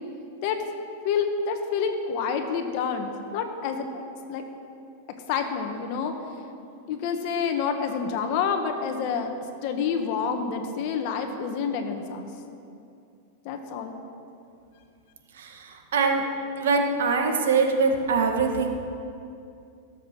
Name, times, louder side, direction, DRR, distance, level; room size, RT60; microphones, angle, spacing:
voice 1, 1.0-4.0 4.3-4.4 5.3-6.1 6.9-9.3 9.6-12.3 13.4-14.0, left 6 dB, 50° left, 5 dB, 1.4 m, -28 dB
voice 2, 15.4-16.2 16.6-18.7, right 4 dB, 85° right, 3 dB, 1.8 m, -23 dB
16.5 x 7.4 x 6.1 m, 2.6 s
supercardioid pair, 145°, 0 cm